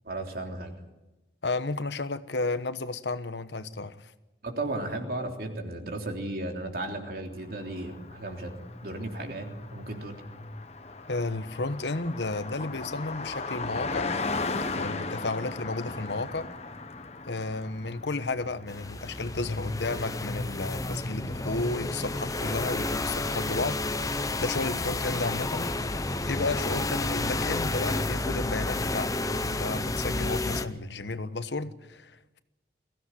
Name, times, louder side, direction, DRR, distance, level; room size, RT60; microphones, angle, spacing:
voice 1, 0.0-0.7 4.4-8.5 8.8-10.2, right 2 dB, 55° right, 3.4 m, -35 dB
voice 2, 1.4-4.1 11.1-14.1 14.7-16.5 17.3-26.0 26.2-32.4, left 3 dB, 80° left, 1.1 m, -33 dB
Car passing by, 7.5-23.6, left 3 dB, 35° left, 1.3 m, -37 dB
sound 1, 18.7-30.6, left 2 dB, 20° left, 0.8 m, -31 dB
22.0 x 16.0 x 9.9 m
head